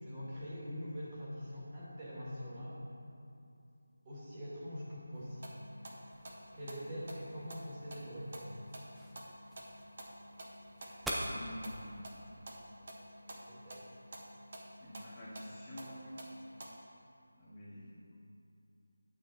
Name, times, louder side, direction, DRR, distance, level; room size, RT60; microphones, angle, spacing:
voice 1, 0.0-2.8 4.0-5.6 6.5-8.6 13.5-13.8 16.0-16.1, equal, 20° right, -9 dB, 2.4 m, -44 dB
sound 1, 5.1-16.7, right 1 dB, 45° right, 1.6 m, -51 dB
sound 2, 6.1-12.0, equal, ahead, 0.6 m, -46 dB
voice 2, 11.3-12.1 14.8-16.2 17.3-17.9, left 1 dB, 20° left, -10 dB, 2.0 m, -47 dB
9.1 x 8.9 x 4.3 m, 2.6 s
figure-of-eight pair, 170°, 0 cm